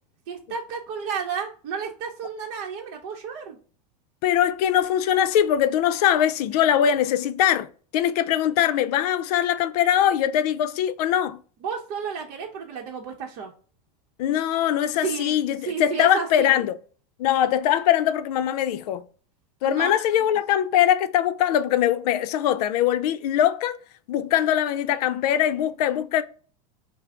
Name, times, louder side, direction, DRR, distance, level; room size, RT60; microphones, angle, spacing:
voice 1, 0.3-3.6 11.6-13.5 14.9-15.3 15.6-16.6 19.6-20.2, right 6 dB, 50° right, 0.8 m, -32 dB
voice 2, 4.2-7.7 7.9-11.4 14.2-16.8 17.2-19.0 19.6-23.8 24.1-26.2, left 10 dB, 70° left, 0.5 m, -22 dB
5.6 x 2.0 x 3.6 m
supercardioid pair, 130°, 21 cm